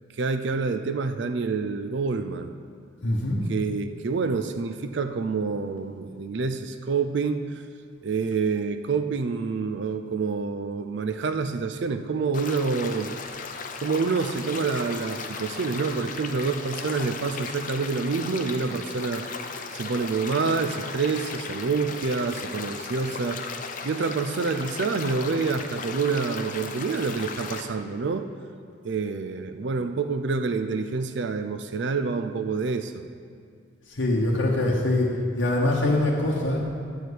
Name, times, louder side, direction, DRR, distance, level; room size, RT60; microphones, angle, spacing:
voice 1, 0.1-2.5 3.5-7.4 8.0-13.1 13.8-19.2 19.7-23.4 23.8-28.3 28.8-33.0, right 4 dB, 55° right, 8 dB, 0.4 m, -27 dB
voice 2, 3.0-3.5 33.9-36.6, left 1 dB, 65° left, -2 dB, 1.0 m, -23 dB
sound 1, 12.3-27.6, left 4 dB, 40° left, 0.6 m, -36 dB
10.5 x 4.8 x 8.1 m, 2.2 s
head